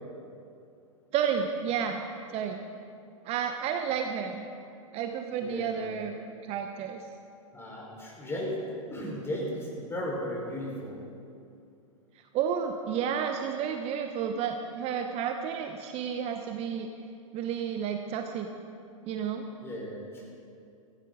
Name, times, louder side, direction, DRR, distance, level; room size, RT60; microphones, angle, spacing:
voice 1, 1.1-2.0 2.3-2.6 3.2-4.4 4.9-6.2 6.4-7.0 12.3-16.9 17.3-18.5 19.1-19.5, right 8 dB, 35° right, 5 dB, 0.9 m, -31 dB
voice 2, 5.4-6.0 7.5-8.6 8.9-11.0 19.6-20.3, equal, 15° left, -3 dB, 4.5 m, -35 dB
17.0 x 14.5 x 3.9 m, 2.5 s
figure-of-eight pair, 100°, 18 cm